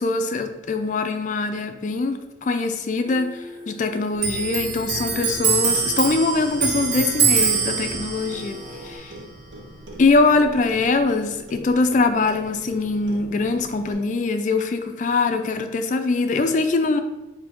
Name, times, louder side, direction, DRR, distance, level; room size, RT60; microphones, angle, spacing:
voice 1, 0.0-3.3 3.7-9.1 10.0-17.0, left 3 dB, 40° left, 8 dB, 0.3 m, -22 dB
Singing, 3.0-9.0, left 2 dB, 45° right, 1.5 m, -42 dB
Clock, 4.2-11.2 11.5-12.8 13.1-13.9, right 6 dB, 80° right, 0.7 m, -25 dB
4.2 x 2.6 x 4.4 m, 1.0 s
head